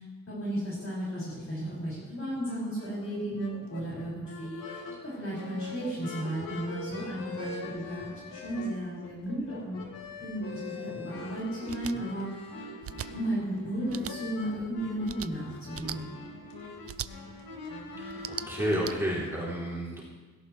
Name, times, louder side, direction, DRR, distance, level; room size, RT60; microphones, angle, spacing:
voice 1, 0.0-9.8 10.2-12.5 12.9-16.1, right 1 dB, 40° left, -8 dB, 5.7 m, -34 dB
sound 1, 2.5-19.1, left 3 dB, 75° left, 2.3 m, -43 dB
sound 2, 11.7-11.9 12.8-13.1 13.9-14.1 15.0-15.3 15.7-16.0 16.9-17.1 18.1-18.9, right 10 dB, 45° right, 0.4 m, -38 dB
voice 2, 18.0-20.0, equal, 5° right, -6 dB, 3.4 m, -31 dB
17.5 x 17.0 x 3.3 m, 1.4 s
wide cardioid pair, 150°, 34 cm